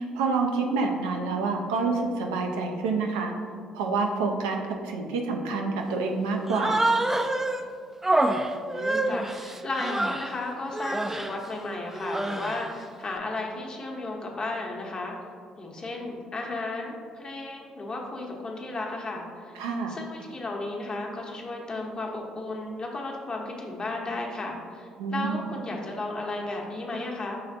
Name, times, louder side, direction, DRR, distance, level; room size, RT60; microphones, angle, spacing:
voice 1, 0.0-3.3 3.7-6.9 19.5-20.0 25.0-25.4, right 4 dB, 85° right, 2 dB, 0.4 m, -28 dB
Human voice, 6.5-7.6 8.0-10.4 10.7-11.4 11.9-12.7, right 2 dB, 15° right, 0.3 m, -27 dB
voice 2, 8.7-15.1 15.6-19.6 19.9-27.4, left 2 dB, 40° left, 0 dB, 0.9 m, -34 dB
5.7 x 3.2 x 2.6 m, 2.2 s
hypercardioid pair, 55°, 2 cm